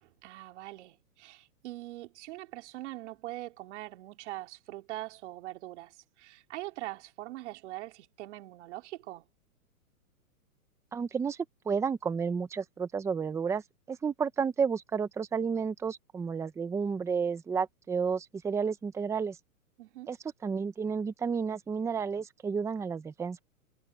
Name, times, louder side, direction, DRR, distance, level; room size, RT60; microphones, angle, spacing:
voice 1, 0.0-9.2 19.8-20.1, right 17 dB, 50° right, 3.2 m, -42 dB
voice 2, 10.9-11.4 11.6-13.6 13.9-19.4 20.1-20.2 20.4-23.4, right 6 dB, 5° right, 0.9 m, -31 dB
hypercardioid pair, 150°, 45 cm